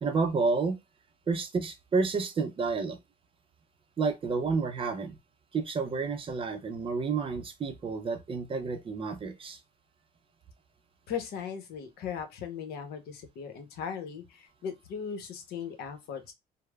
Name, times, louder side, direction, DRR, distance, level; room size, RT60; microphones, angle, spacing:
voice 1, 0.0-0.8 1.3-3.0 4.0-5.2 5.5-9.6, right 4 dB, 30° right, 0.5 m, -30 dB
voice 2, 11.1-16.3, left 7 dB, 70° left, 0.8 m, -38 dB
3.0 x 2.0 x 2.2 m
cardioid pair, 110°, 17 cm